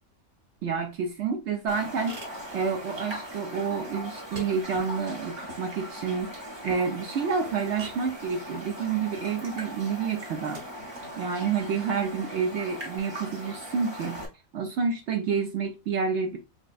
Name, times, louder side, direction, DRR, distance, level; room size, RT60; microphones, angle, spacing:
voice 1, 0.6-2.2 2.5-10.6 11.2-14.2 14.5-16.4, right 5 dB, 65° right, 0.9 m, -29 dB
Car parking brake tighten and loosen, 1.6-13.0, right 1 dB, 85° right, 2.6 m, -50 dB
Raindrop, 1.7-14.3, equal, 25° right, 0.7 m, -40 dB
6.2 x 2.1 x 2.5 m
omnidirectional pair, 1.3 m